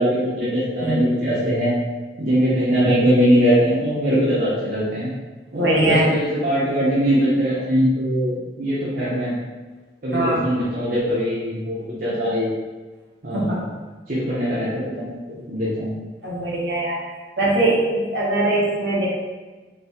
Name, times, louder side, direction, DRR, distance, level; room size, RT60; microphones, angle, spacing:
voice 1, 0.0-1.7 2.2-5.1 5.5-9.3 10.0-12.5 13.2-13.7 14.1-15.1 15.5-16.0, equal, 55° right, -9 dB, 0.9 m, -21 dB
voice 2, 5.5-6.0 10.1-10.4 13.3-13.6 16.2-17.0 17.4-19.1, right 2 dB, 75° right, -5 dB, 1.2 m, -21 dB
4.0 x 2.3 x 4.3 m, 1.3 s
head